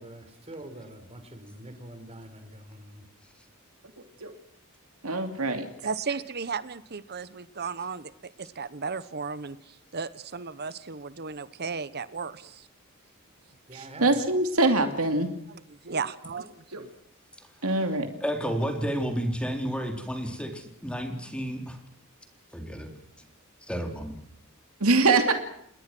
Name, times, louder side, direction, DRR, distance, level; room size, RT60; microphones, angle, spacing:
voice 1, 0.0-3.0 13.7-14.3, right 1 dB, 30° right, 8 dB, 4.7 m, -45 dB
voice 2, 5.0-5.7 13.7-15.3 16.7-16.8 17.6-18.1 24.8-25.3, right 2 dB, 80° right, 6 dB, 2.7 m, -23 dB
voice 3, 5.8-12.7 15.5-16.5 16.8-16.9, right 5 dB, 50° right, 15 dB, 1.0 m, -35 dB
voice 4, 18.2-21.8 22.5-22.9 23.7-24.1, equal, 5° left, 4 dB, 3.9 m, -31 dB
29.0 x 21.0 x 6.2 m, 0.71 s
head